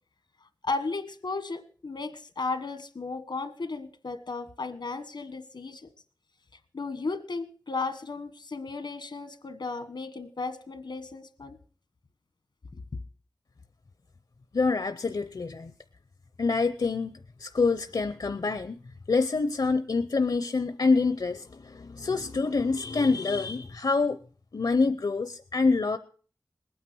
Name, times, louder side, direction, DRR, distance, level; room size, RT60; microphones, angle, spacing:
voice 1, 0.6-5.9 6.7-11.6 12.7-12.8, left 3 dB, 90° left, 11 dB, 1.3 m, -35 dB
voice 2, 14.5-15.7 16.4-18.7 19.1-24.2 24.5-26.0, left 4 dB, 75° left, 11 dB, 0.7 m, -26 dB
20.0 x 9.4 x 6.2 m, 0.43 s
wide cardioid pair, 50°, 7 cm